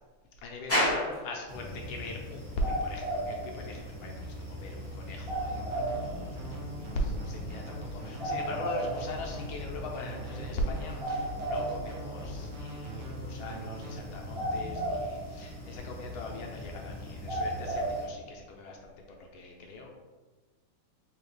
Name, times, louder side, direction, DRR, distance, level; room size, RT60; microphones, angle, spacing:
voice 1, 0.4-19.9, left 1 dB, 80° left, 0 dB, 1.3 m, -39 dB
sound 1, 0.7-18.1, equal, 15° left, 0.5 m, -41 dB
sound 2, 1.5-18.1, right 1 dB, 35° right, 0.5 m, -37 dB
sound 3, 5.2-14.0, right 1 dB, 85° right, 1.6 m, -42 dB
4.1 x 2.8 x 3.1 m, 1.3 s
omnidirectional pair, 2.3 m